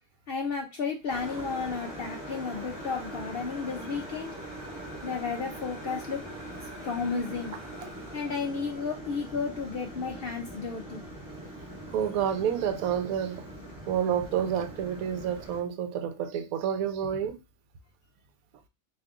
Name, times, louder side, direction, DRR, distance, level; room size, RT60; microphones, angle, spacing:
voice 1, 0.3-4.3 5.0-6.2 6.8-7.6 8.1-11.0, left 5 dB, 65° left, 0.5 m, -33 dB
sound 1, 1.0-8.7, equal, 15° left, 0.9 m, -49 dB
sound 2, 1.1-15.6, right 1 dB, 15° right, 0.9 m, -42 dB
voice 2, 11.9-13.5 13.9-17.4, right 9 dB, 85° right, 1.0 m, -29 dB
3.7 x 2.7 x 3.5 m
omnidirectional pair, 1.4 m